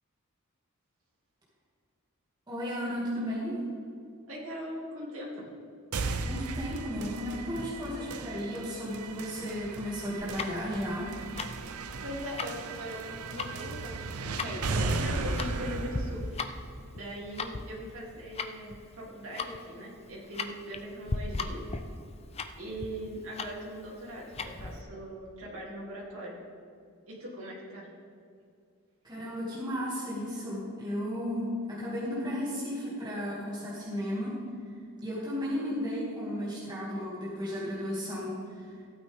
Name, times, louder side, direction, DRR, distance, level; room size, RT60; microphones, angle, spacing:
voice 1, 2.5-3.6 6.2-11.2 29.0-34.4 35.0-38.6, equal, 20° right, -8 dB, 2.3 m, -34 dB
voice 2, 4.3-5.4 12.0-16.6 16.9-21.6 22.6-26.4 27.1-27.9, equal, 70° right, -5 dB, 2.9 m, -40 dB
sound 1, 5.9-17.9, right 3 dB, 85° right, 0.7 m, -36 dB
Tick-tock, 10.2-24.8, left 3 dB, 30° left, 0.5 m, -39 dB
15.5 x 8.7 x 3.6 m, 2.4 s
head